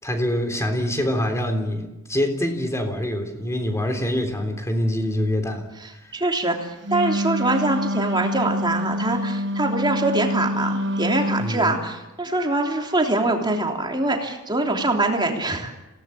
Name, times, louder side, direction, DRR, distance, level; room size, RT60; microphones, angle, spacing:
voice 1, 0.0-5.6 6.0-6.1 11.4-11.8, left 1 dB, 15° left, 5 dB, 3.5 m, -25 dB
voice 2, 6.1-15.7, right 2 dB, 20° right, 2 dB, 3.2 m, -23 dB
Wind instrument woodwind instrument, 6.8-11.6, equal, 55° right, 1.2 m, -26 dB
27.0 x 18.0 x 8.6 m, 0.98 s
head